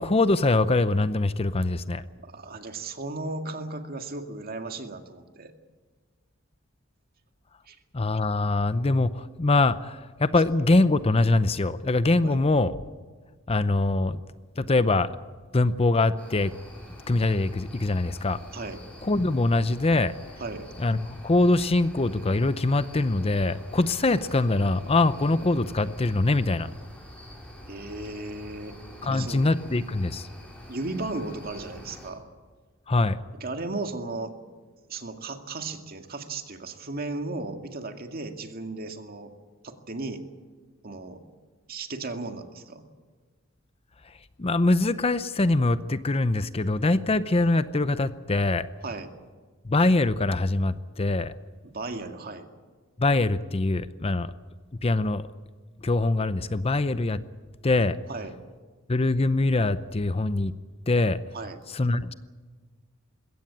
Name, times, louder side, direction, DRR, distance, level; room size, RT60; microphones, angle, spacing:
voice 1, 0.0-2.0 7.9-12.7 13.5-14.2 14.6-15.1 15.5-16.5 17.1-18.4 19.0-20.1 20.8-26.7 29.0-30.3 32.9-33.2 44.4-48.7 49.6-51.3 53.0-54.3 54.8-55.2 55.8-57.2 57.6-58.0 58.9-60.5 60.9-61.2 61.7-62.1, left 2 dB, 30° left, 13 dB, 0.6 m, -23 dB
voice 2, 2.2-5.5 7.7-7.8 12.2-12.4 18.5-18.8 20.4-20.7 27.7-28.8 29.0-29.5 30.7-32.2 33.4-34.3 34.9-39.3 39.6-40.2 40.8-41.2 41.7-42.8 48.8-49.1 51.7-52.5 58.1-58.3 61.3-61.6, right 2 dB, 45° right, 6 dB, 2.1 m, -35 dB
sound 1, 16.2-32.1, equal, 5° left, 5.4 m, -46 dB
21.5 x 17.0 x 8.8 m, 1.5 s
head